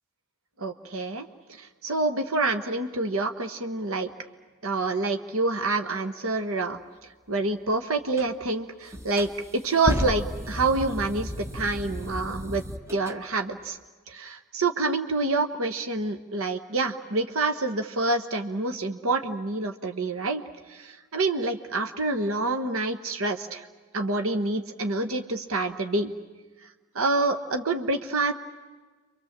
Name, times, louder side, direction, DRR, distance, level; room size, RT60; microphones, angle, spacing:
voice 1, 0.6-1.3 1.6-4.1 4.6-6.8 7.3-12.6 12.9-13.8 14.1-20.4 20.7-23.7 23.9-26.1 26.9-28.3, right 3 dB, 70° right, 7 dB, 1.3 m, -27 dB
sound 1, 8.1-8.3 8.9-13.2, equal, 10° right, 0.9 m, -33 dB
29.0 x 24.5 x 7.4 m, 1.4 s
head